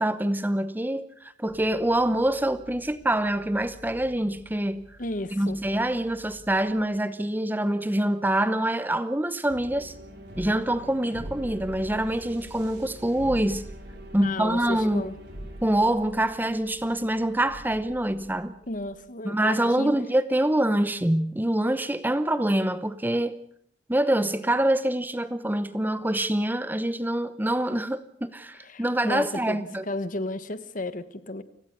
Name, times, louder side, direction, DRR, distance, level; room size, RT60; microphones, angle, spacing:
voice 1, 0.0-4.8 5.3-9.9 10.4-13.6 14.1-15.1 15.6-18.5 19.2-23.4 23.9-29.8, right 1 dB, 10° right, 0.8 m, -25 dB
sound 1, 1.5-6.8, left 1 dB, 65° left, 7.9 m, -52 dB
voice 2, 5.0-5.6 14.2-15.1 18.7-20.0 28.6-31.4, left 2 dB, 45° left, 1.3 m, -33 dB
sound 2, 9.5-18.9, equal, 65° right, 5.6 m, -43 dB
30.0 x 17.0 x 6.7 m
head